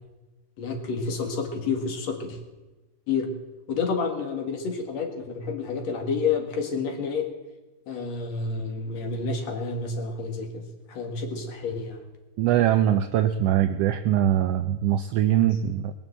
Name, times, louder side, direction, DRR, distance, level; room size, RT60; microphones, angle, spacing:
voice 1, 0.6-2.4 3.1-3.3 3.7-7.3 7.9-12.0, left 4 dB, 65° left, 4 dB, 3.0 m, -29 dB
voice 2, 12.4-15.9, right 11 dB, 80° right, 9 dB, 1.4 m, -22 dB
21.0 x 7.1 x 7.9 m, 1.1 s
omnidirectional pair, 3.3 m